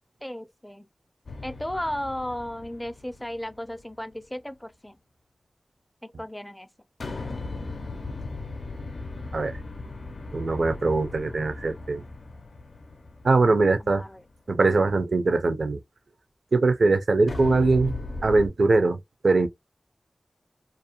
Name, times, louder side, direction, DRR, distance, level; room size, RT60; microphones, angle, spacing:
voice 1, 0.2-0.9 1.4-4.9 6.0-6.7 13.8-14.2, left 1 dB, 15° left, 0.4 m, -35 dB
sound 1, 1.3-3.8 7.0-14.2 17.3-18.5, left 3 dB, 80° left, 0.5 m, -37 dB
voice 2, 10.3-12.0 13.2-14.0 14.5-15.8 16.5-17.9 18.2-19.0 19.2-19.5, right 3 dB, 75° right, 0.4 m, -21 dB
2.4 x 2.1 x 2.8 m
cardioid pair, 40°, 0 cm